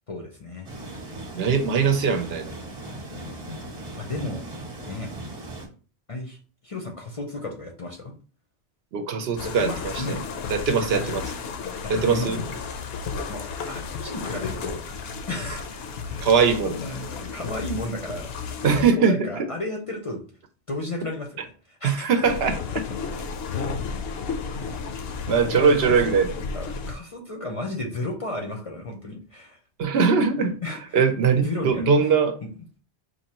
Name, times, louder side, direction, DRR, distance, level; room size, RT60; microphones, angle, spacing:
voice 1, 0.1-0.7 3.1-4.5 4.9-5.1 6.1-6.4 6.6-8.1 9.4-10.5 10.9-11.0 11.9-12.6 13.3-13.4 13.7-14.8 15.3-16.3 16.6-20.2 20.7-22.2 24.5-25.0 25.4-29.6 30.4-30.8 31.4-31.9, left 2 dB, 40° left, 0.5 m, -34 dB
sound 1, 0.6-5.7, right 2 dB, 35° right, 0.9 m, -38 dB
voice 2, 1.3-2.6 8.9-10.0 10.5-11.2 11.9-12.4 16.2-16.7 18.6-19.4 21.8-22.9 25.3-26.3 29.8-30.6 30.9-32.4, right 5 dB, 70° right, 0.8 m, -21 dB
sound 2, 9.4-18.8 22.3-26.9, left 5 dB, 70° left, 0.8 m, -33 dB
4.6 x 2.6 x 2.9 m
omnidirectional pair, 1.1 m